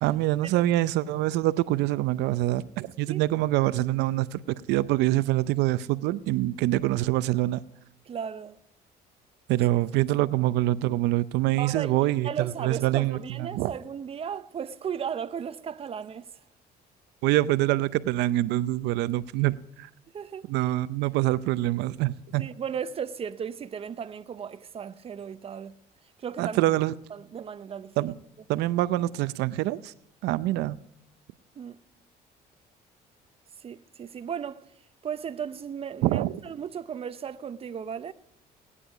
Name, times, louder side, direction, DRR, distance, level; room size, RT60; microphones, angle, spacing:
voice 1, 0.0-4.4 4.7-7.6 9.5-13.7 17.2-19.9 20.5-22.4 26.4-26.9 28.0-28.2 28.5-29.9 30.2-30.8 36.0-36.4, right 16 dB, 90° right, 0.6 m, -25 dB
voice 2, 8.1-8.5 11.6-16.3 20.1-20.5 22.4-25.7 26.2-26.6 27.1-28.1 31.6-31.8 33.6-34.6 35.0-38.1, right 7 dB, 35° right, 0.6 m, -35 dB
17.5 x 9.9 x 5.0 m
cardioid pair, 110°, 17 cm